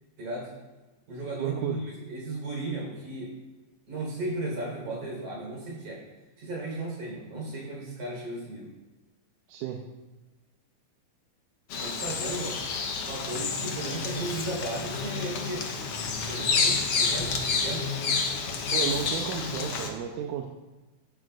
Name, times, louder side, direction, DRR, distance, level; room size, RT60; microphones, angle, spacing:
voice 1, 0.2-0.5 1.1-3.3 3.9-6.0 6.4-8.7 11.8-12.6 13.0-15.7 16.2-17.9, right 2 dB, 70° right, -3 dB, 5.9 m, -35 dB
voice 2, 1.4-1.8 9.5-9.8 18.7-20.5, right 9 dB, 85° right, 1 dB, 2.3 m, -32 dB
Bird vocalization bird call bird song, 11.7-19.9, left 4 dB, 60° left, 1.9 m, -29 dB
14.0 x 12.5 x 2.6 m, 1.2 s
omnidirectional pair, 3.5 m